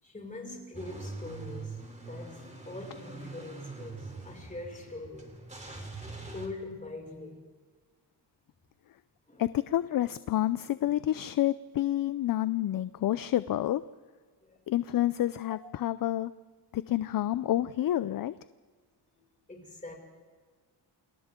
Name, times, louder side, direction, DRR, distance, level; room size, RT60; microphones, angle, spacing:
voice 1, 0.0-5.4 6.3-7.4 9.3-9.4 14.4-14.6 15.5-15.6 19.1-19.2 19.5-19.9, left 2 dB, 20° left, 0 dB, 5.9 m, -43 dB
Car / Engine starting / Idling, 0.7-6.5, right 3 dB, 15° right, 3.3 m, -43 dB
voice 2, 9.4-13.8 14.7-16.3 16.7-18.3, left 13 dB, 50° left, 15 dB, 0.5 m, -29 dB
29.0 x 26.0 x 3.7 m, 1.5 s
cardioid pair, 120°, 43 cm